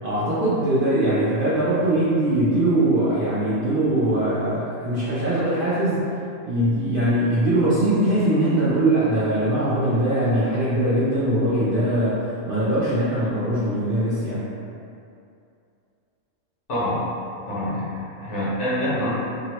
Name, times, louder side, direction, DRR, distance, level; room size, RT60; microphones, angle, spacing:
voice 1, 0.0-6.1 6.4-14.5, right 1 dB, 60° right, -11 dB, 0.6 m, -21 dB
voice 2, 16.7-17.1 17.5-19.1, left 1 dB, 60° left, -9 dB, 1.1 m, -26 dB
3.6 x 2.0 x 2.8 m, 2.6 s
omnidirectional pair, 1.5 m